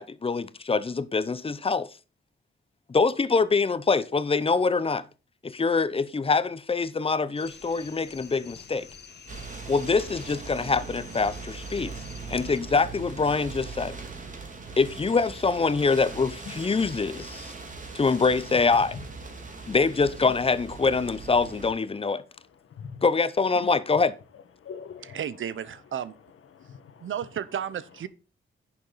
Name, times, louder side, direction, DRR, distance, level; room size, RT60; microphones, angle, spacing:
voice 1, 0.0-1.9 2.9-5.0 5.4-8.9 9.7-12.0 12.3-14.0 14.8-17.5 17.9-19.0 19.7-22.2 23.0-24.1, left 4 dB, 25° left, 0.7 m, -24 dB
sound 1, 7.4-12.6, left 6 dB, 50° left, 1.4 m, -48 dB
voice 2, 8.2-8.9 13.8-14.8 16.2-18.1 18.5-19.8 21.9-23.0 23.5-24.0 24.3-25.6 25.9-27.3, left 6 dB, 80° left, 1.6 m, -47 dB
sound 2, 9.3-21.7, right 4 dB, 35° right, 2.6 m, -40 dB
voice 3, 25.1-26.1 27.0-28.1, right 9 dB, 70° right, 0.8 m, -33 dB
10.5 x 7.1 x 4.1 m
wide cardioid pair, 110°, 21 cm